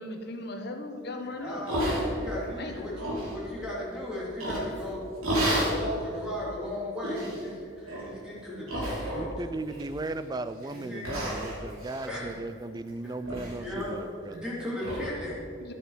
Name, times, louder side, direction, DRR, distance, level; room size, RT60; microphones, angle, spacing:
voice 1, 0.0-1.6 2.6-2.8 15.6-15.7, left 2 dB, 50° left, 5 dB, 1.1 m, -37 dB
voice 2, 1.2-5.0 5.3-9.2 10.7-11.3 12.1-12.3 13.0-13.1 13.6-15.4, left 1 dB, 5° right, -7 dB, 3.3 m, -36 dB
sound 1, 1.7-2.4 2.8-3.4 4.4-4.8 5.2-5.8 6.3-6.4 7.0-7.4 7.9-8.1 8.7-9.4 9.7-10.2 10.6-10.8 11.0-12.9 13.2-13.6 13.8-13.9 14.3-14.4 14.8-15.0, right 1 dB, 90° right, 3.2 m, -31 dB
voice 3, 1.9-2.7 9.1-14.4, right 2 dB, 20° right, 12 dB, 0.3 m, -37 dB
12.0 x 9.0 x 5.1 m, 2.5 s
head